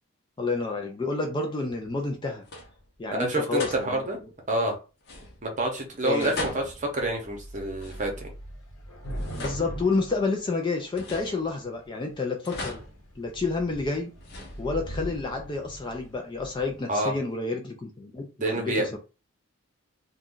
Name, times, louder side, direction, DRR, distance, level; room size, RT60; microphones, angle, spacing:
voice 1, 0.4-2.4 3.0-4.1 6.0-6.4 9.4-12.8 13.2-14.1 14.6-19.0, left 3 dB, 20° left, 0.3 m, -29 dB
sound 1, 1.9-2.1 2.4-3.0 3.6-4.2 5.0-5.7 6.2-8.4 9.0-10.4 10.9-11.9 12.4-13.7 14.2-15.1, left 2 dB, 45° left, 0.7 m, -40 dB
voice 2, 3.1-4.2 4.5-4.8 5.4-8.3 16.9-17.2 18.4-19.0, right 1 dB, 35° right, 0.7 m, -28 dB
Thunder / Rain, 6.7-6.8 7.0-11.1 11.8-12.3 12.7-12.8 13.1-16.9, right 1 dB, 75° left, 0.9 m, -40 dB
2.5 x 2.2 x 3.6 m
head